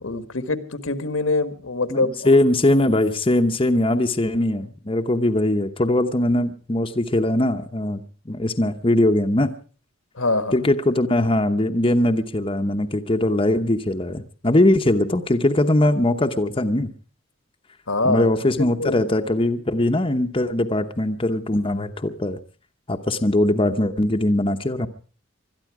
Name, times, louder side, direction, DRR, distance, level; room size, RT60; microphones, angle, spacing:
voice 1, 0.0-2.3 10.2-10.5 17.9-18.3 18.8-19.0, left 2 dB, 85° left, 10 dB, 1.6 m, -24 dB
voice 2, 1.9-9.5 10.5-16.9 18.0-22.4 22.9-24.9, left 1 dB, 25° left, 6 dB, 0.9 m, -21 dB
21.5 x 13.0 x 4.9 m, 0.40 s
head